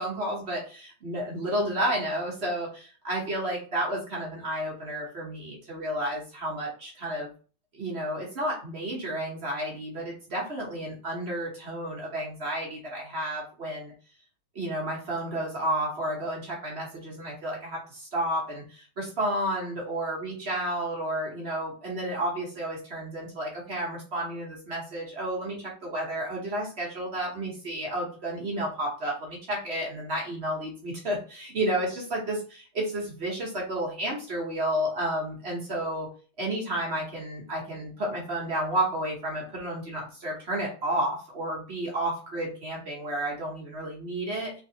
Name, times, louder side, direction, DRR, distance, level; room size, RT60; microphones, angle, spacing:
voice 1, 0.0-7.3 7.7-13.9 14.5-36.1 36.4-44.6, right 1 dB, 45° right, -2 dB, 0.8 m, -31 dB
3.6 x 3.3 x 2.7 m, 0.38 s
omnidirectional pair, 2.3 m